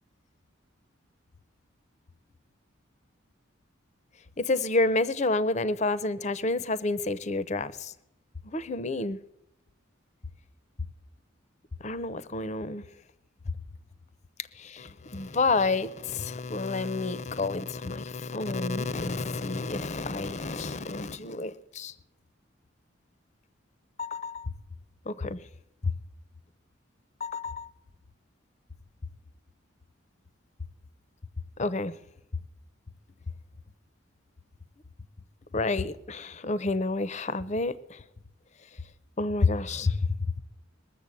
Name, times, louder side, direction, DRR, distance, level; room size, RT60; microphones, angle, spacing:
voice 1, 4.4-7.9 8.5-9.2 11.8-12.8 14.6-21.9 24.0-24.5 25.1-25.4 25.8-25.9 27.2-27.7 31.6-31.9 35.5-37.7 39.2-40.0, left 3 dB, 35° left, 17 dB, 0.6 m, -29 dB
20.5 x 7.1 x 8.4 m, 0.82 s
head